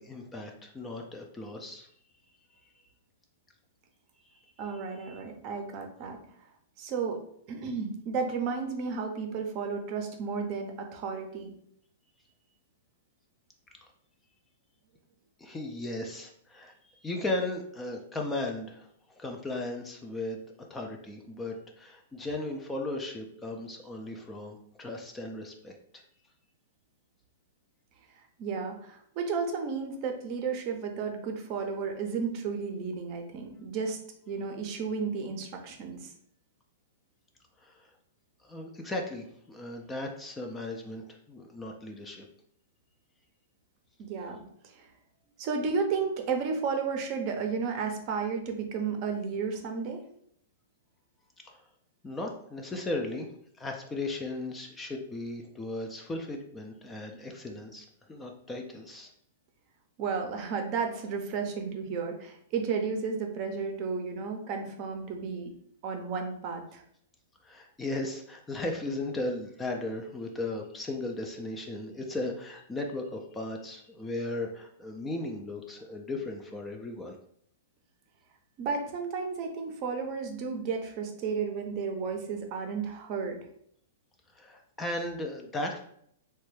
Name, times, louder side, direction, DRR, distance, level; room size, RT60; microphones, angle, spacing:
voice 1, 0.0-1.9 2.6-2.7 4.3-4.4 4.7-5.2 15.4-26.0 37.6-37.9 38.4-42.3 51.4-51.6 52.0-53.3 53.6-59.1 67.4-77.2 84.3-85.8, left 2 dB, 15° left, 2 dB, 0.4 m, -36 dB
voice 2, 4.6-6.2 6.8-7.2 7.5-11.5 28.4-34.0 34.3-36.1 44.0-44.9 45.4-50.0 60.0-65.5 65.8-66.8 78.6-83.4, right 5 dB, 40° right, 4 dB, 0.6 m, -33 dB
3.0 x 2.2 x 3.1 m, 0.68 s
hypercardioid pair, 135°, 0 cm